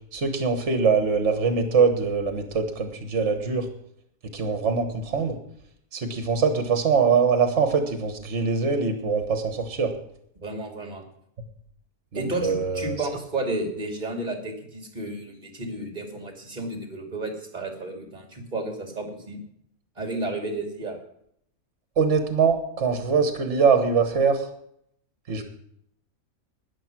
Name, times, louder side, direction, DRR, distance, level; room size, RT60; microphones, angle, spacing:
voice 1, 0.1-3.7 4.3-5.4 5.9-9.9 12.1-13.0 22.0-24.4 25.3-25.4, right 5 dB, 55° right, 7 dB, 1.7 m, -23 dB
voice 2, 10.4-11.0 12.1-19.4 20.0-21.0, right 2 dB, 30° right, 4 dB, 2.7 m, -32 dB
13.5 x 9.6 x 6.1 m, 0.71 s
omnidirectional pair, 1.5 m